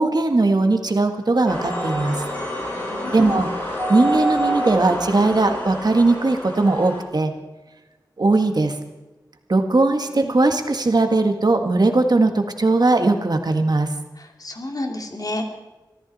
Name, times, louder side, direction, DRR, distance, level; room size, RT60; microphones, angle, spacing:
voice 1, 0.0-2.2 3.1-7.3 8.2-8.8 9.5-13.9, right 2 dB, 65° right, 5 dB, 1.7 m, -19 dB
sound 1, 1.5-7.0, equal, 25° left, 7.9 m, -27 dB
voice 2, 2.7-3.4 10.1-10.3 14.2-15.4, left 1 dB, 55° left, 3 dB, 2.6 m, -31 dB
23.5 x 14.5 x 4.2 m, 1.1 s
wide cardioid pair, 50°, 8 cm